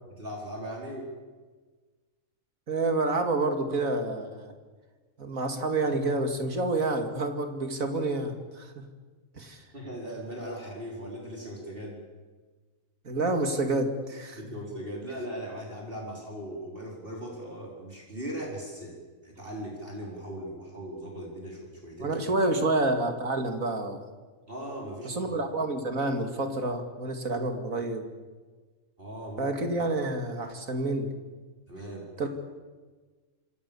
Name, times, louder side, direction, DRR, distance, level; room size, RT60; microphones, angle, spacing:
voice 1, 0.1-1.1 9.7-12.0 14.3-19.0 19.2-22.3 24.5-25.3 29.0-29.5 31.7-32.3, equal, 40° right, -1 dB, 4.8 m, -39 dB
voice 2, 2.7-4.5 5.2-8.8 9.4-9.6 13.0-14.6 22.0-24.1 25.0-28.0 29.4-31.1 32.2-32.3, right 2 dB, 80° right, 6 dB, 2.9 m, -28 dB
26.5 x 25.5 x 7.1 m, 1.4 s
omnidirectional pair, 1.4 m